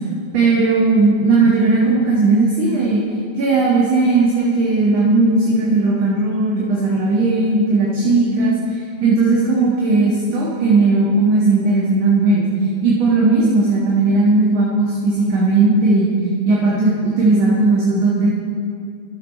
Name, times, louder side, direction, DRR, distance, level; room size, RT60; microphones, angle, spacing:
voice 1, 0.3-3.0 3.4-8.6 9.0-12.5 12.8-16.1 16.4-18.3, right 3 dB, 45° right, -4 dB, 1.5 m, -16 dB
13.0 x 6.8 x 4.2 m, 2.3 s
figure-of-eight pair, 90°, 0 cm